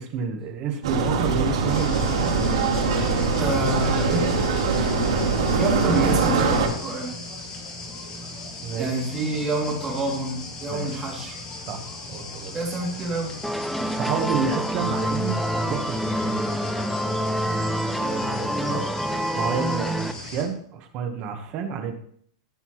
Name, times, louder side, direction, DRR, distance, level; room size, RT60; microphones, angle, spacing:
voice 1, 0.0-2.7 8.6-9.0 10.7-11.0 11.6-12.5 13.8-16.4 19.3-21.9, right 6 dB, 30° right, 6 dB, 1.3 m, -30 dB
sound 1, 0.8-6.7, right 4 dB, 85° right, 3.2 m, -22 dB
sound 2, 1.7-20.4, left 2 dB, 25° left, 2.1 m, -38 dB
voice 2, 3.4-4.3 5.6-7.1 8.8-11.4 12.5-13.3 18.0-18.9, right 2 dB, 15° right, -3 dB, 2.8 m, -27 dB
sound 3, 13.4-20.1, equal, ahead, 0.4 m, -26 dB
14.0 x 6.8 x 3.2 m, 0.63 s
supercardioid pair, 165°, 3 cm